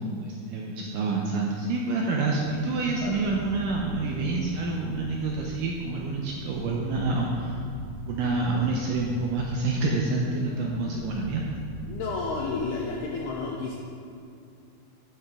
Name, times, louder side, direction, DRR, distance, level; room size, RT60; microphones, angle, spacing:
voice 1, 0.0-7.6 8.1-11.4, right 3 dB, 85° right, -1 dB, 1.9 m, -28 dB
sound 1, 2.2-12.5, right 1 dB, 65° left, 1.9 m, -41 dB
voice 2, 11.9-13.7, left 4 dB, 80° left, -2 dB, 1.8 m, -31 dB
12.0 x 5.7 x 3.5 m, 2.5 s
omnidirectional pair, 4.4 m